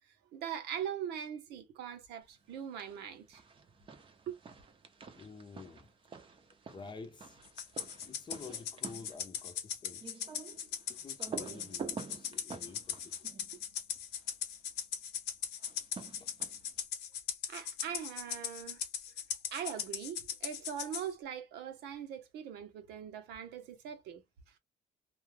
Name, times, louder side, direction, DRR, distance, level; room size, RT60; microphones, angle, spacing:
voice 1, 0.3-3.4 4.3-4.4 17.5-18.8 19.5-24.2, right 8 dB, 80° right, 0.8 m, -41 dB
sound 1, 2.5-3.0 3.3-14.3 15.6-16.8, right 5 dB, 30° right, 0.6 m, -48 dB
voice 2, 5.1-5.9 6.5-7.4 8.0-10.1 10.9-13.3 16.1-16.4, left 4 dB, 25° left, 0.7 m, -50 dB
Rattle (instrument), 7.6-21.1, left 9 dB, 80° left, 0.9 m, -39 dB
2.3 x 2.3 x 3.2 m
cardioid pair, 110°, 17 cm